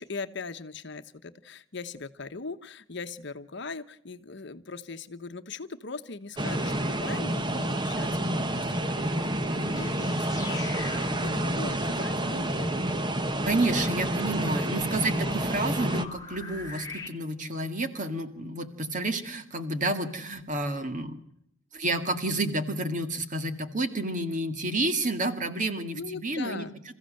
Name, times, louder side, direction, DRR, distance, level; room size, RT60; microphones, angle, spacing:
voice 1, 0.0-9.9 10.2-10.6 11.2-12.9 13.6-14.1 25.9-26.7, left 3 dB, 60° left, 9 dB, 1.0 m, -40 dB
sound 1, 6.4-16.0, right 1 dB, 20° right, 1.0 m, -29 dB
sound 2, 9.6-17.1, left 3 dB, 20° left, 2.8 m, -44 dB
voice 2, 13.4-21.2 21.7-26.7, right 2 dB, 40° right, 8 dB, 2.0 m, -30 dB
27.5 x 15.0 x 7.7 m, 0.77 s
head